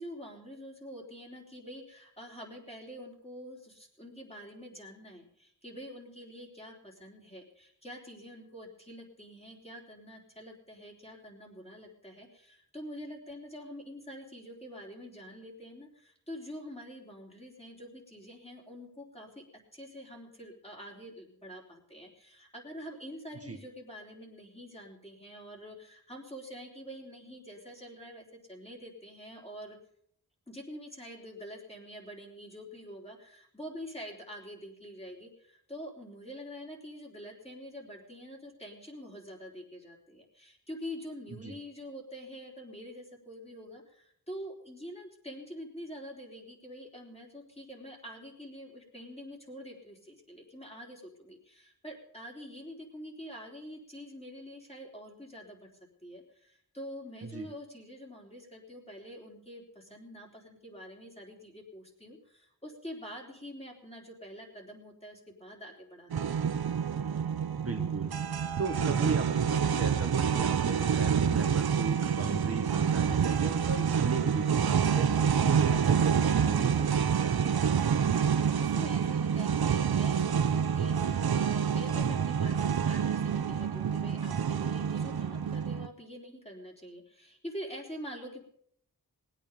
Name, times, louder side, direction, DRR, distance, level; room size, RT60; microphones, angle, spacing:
voice 1, 0.0-19.4 19.7-29.8 30.5-55.7 56.0-66.4 78.0-88.4, equal, 15° left, -1 dB, 3.7 m, -46 dB
sound 1, 66.1-85.9, right 7 dB, 70° right, 0.8 m, -27 dB
voice 2, 67.6-68.1 68.6-77.6, right 4 dB, 35° right, 2 dB, 1.5 m, -36 dB
20.0 x 9.2 x 5.3 m, 0.68 s
wide cardioid pair, 80°, 39 cm